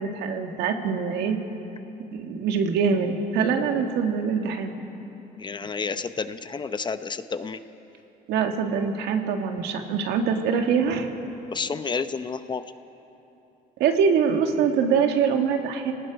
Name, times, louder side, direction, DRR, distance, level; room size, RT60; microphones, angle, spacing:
voice 1, 0.0-1.4 2.1-4.8 8.3-11.1 13.8-15.9, right 6 dB, 80° right, 4 dB, 1.8 m, -24 dB
voice 2, 5.4-7.6 11.5-12.6, left 5 dB, 25° left, 11 dB, 0.7 m, -30 dB
28.0 x 19.0 x 5.2 m, 3.0 s
cardioid pair, 110°, 17 cm